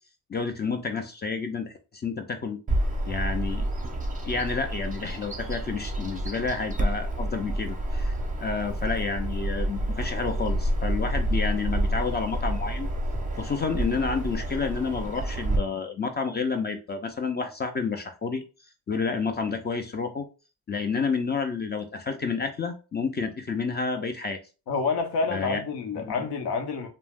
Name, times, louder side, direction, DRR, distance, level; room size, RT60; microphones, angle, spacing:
voice 1, 0.3-2.6 3.1-3.6 4.2-12.9 13.4-18.4 18.9-20.2 20.7-24.4 25.3-25.6 26.0-26.2, left 5 dB, 25° left, 0.4 m, -30 dB
Bird vocalization bird call bird song, 2.7-15.6, right 1 dB, 20° right, 0.6 m, -29 dB
voice 2, 24.7-26.9, left 4 dB, 75° left, 0.8 m, -28 dB
2.4 x 2.1 x 3.4 m
cardioid pair, 80°, 38 cm